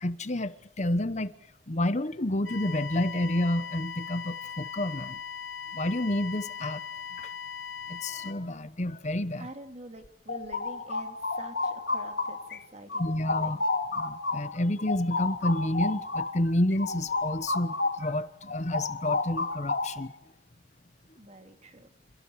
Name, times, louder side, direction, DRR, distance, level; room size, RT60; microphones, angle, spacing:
voice 1, 0.0-1.3 1.7-5.2 5.7-6.8 7.2-7.3 7.9-9.5 13.0-13.6 13.9-20.1, left 1 dB, 35° left, 1.0 m, -29 dB
sound 1, 2.4-8.3, left 7 dB, 85° left, 3.7 m, -39 dB
voice 2, 9.4-13.6 21.2-21.9, right 1 dB, 35° right, 3.2 m, -47 dB
sound 2, 10.0-12.6 12.9-18.1 18.4-20.2, left 3 dB, 55° left, 2.1 m, -31 dB
28.5 x 28.0 x 4.9 m
head